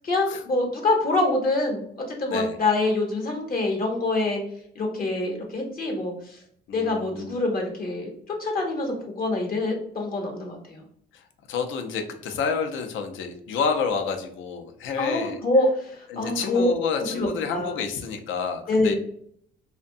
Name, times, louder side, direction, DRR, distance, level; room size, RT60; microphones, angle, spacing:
voice 1, 0.0-4.4 4.7-6.4 6.7-8.1 8.4-10.8 15.0-16.7 17.1-17.7 18.7-18.9, left 2 dB, 45° left, 0 dB, 0.7 m, -25 dB
voice 2, 6.7-7.4 11.1-15.4 16.1-18.9, left 6 dB, 80° left, 6 dB, 0.4 m, -29 dB
2.6 x 2.1 x 2.5 m, 0.67 s
cardioid pair, 90°, 20 cm